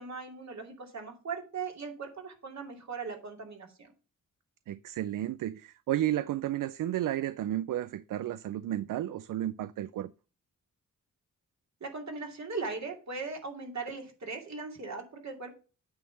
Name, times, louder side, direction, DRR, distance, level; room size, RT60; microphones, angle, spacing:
voice 1, 0.0-3.9 11.8-15.5, right 4 dB, 55° right, 2.7 m, -39 dB
voice 2, 4.7-10.1, right 12 dB, 75° right, 0.5 m, -32 dB
8.9 x 3.6 x 6.9 m
cardioid pair, 65°, 32 cm